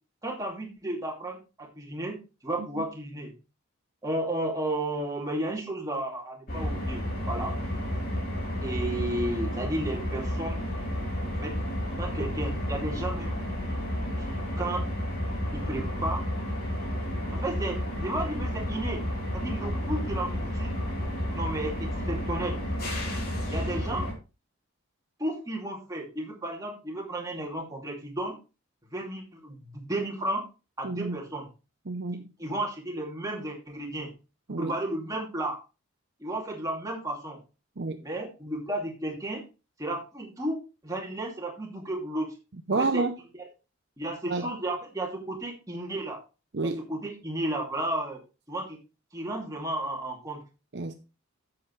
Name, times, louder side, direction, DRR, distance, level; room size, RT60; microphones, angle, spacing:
voice 1, 0.2-2.2 2.4-3.3 4.0-7.5 8.6-10.6 11.3-11.6 12.0-13.4 14.2-14.8 15.5-16.2 17.3-19.0 19.3-20.8 21.3-22.6 23.5-24.1 25.2-28.4 28.9-30.4 30.8-31.5 32.4-34.1 34.5-35.6 36.2-37.4 38.0-39.4 39.8-40.6 40.8-42.3 42.7-43.0 44.0-46.2 46.9-48.2 48.5-48.8 49.1-50.4, right 1 dB, 15° right, 2.6 m, -33 dB
sound 1, 6.5-24.1, equal, 45° left, 3.5 m, -31 dB
voice 2, 30.8-31.2 31.9-32.3 34.5-34.7 37.8-38.0 42.7-43.1 44.3-44.5 46.5-46.8 50.7-50.9, right 3 dB, 55° right, 0.7 m, -29 dB
9.9 x 7.8 x 3.2 m
head